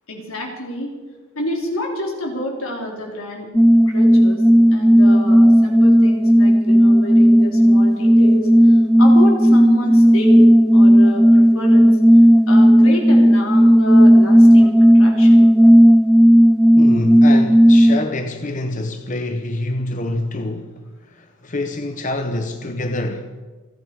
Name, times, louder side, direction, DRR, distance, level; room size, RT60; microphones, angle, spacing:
voice 1, 0.1-0.9 1.4-3.5 3.8-4.4 4.7-10.5 10.7-11.9 12.5-15.5, equal, 75° left, 3.8 m, -28 dB
sound 1, 3.5-18.0, equal, ahead, 0.4 m, -12 dB
voice 2, 16.8-23.4, left 2 dB, 35° left, 0.8 m, -26 dB
28.5 x 9.5 x 4.8 m
head